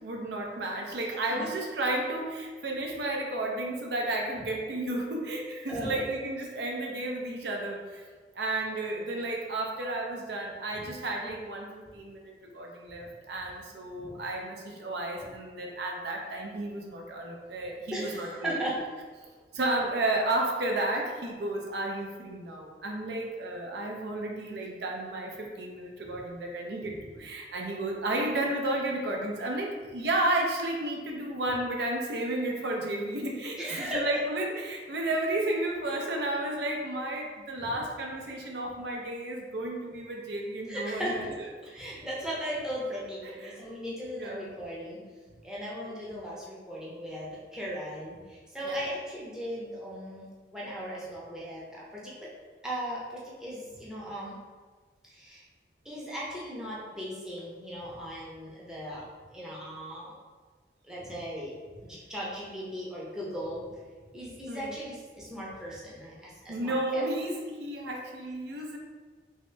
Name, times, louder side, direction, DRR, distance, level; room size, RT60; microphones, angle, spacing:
voice 1, 0.0-8.0 8.4-18.7 19.5-41.2 43.2-43.6 44.2-44.5 48.7-48.8 64.5-64.8 66.5-68.8, right 1 dB, 70° right, 0 dB, 0.5 m, -32 dB
voice 2, 5.7-6.0 10.7-10.9 14.0-14.1 17.9-18.8 26.0-26.1 33.6-34.1 37.6-37.7 40.7-41.3 41.6-45.0 45.4-50.3 50.5-52.3 52.6-54.4 55.0-55.4 55.8-59.1 59.3-60.1 60.8-61.5 61.8-63.8 64.1-67.1, equal, 5° right, -7 dB, 0.6 m, -37 dB
3.1 x 2.7 x 3.2 m, 1.4 s
head